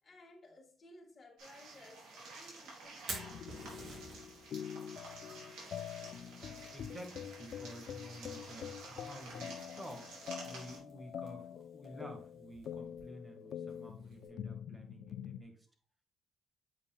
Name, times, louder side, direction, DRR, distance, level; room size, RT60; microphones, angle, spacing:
voice 1, 0.0-3.5, left 1 dB, 35° left, 2.2 m, -58 dB
sound 1, 1.4-10.8, right 3 dB, 85° right, 3.2 m, -51 dB
Fire, 2.9-14.3, right 3 dB, 60° right, 2.8 m, -53 dB
sound 2, 3.1-15.4, left 9 dB, 65° left, 0.3 m, -46 dB
voice 2, 6.5-15.7, equal, 20° right, 1.8 m, -51 dB
8.1 x 5.1 x 2.4 m
cardioid pair, 90°, 0 cm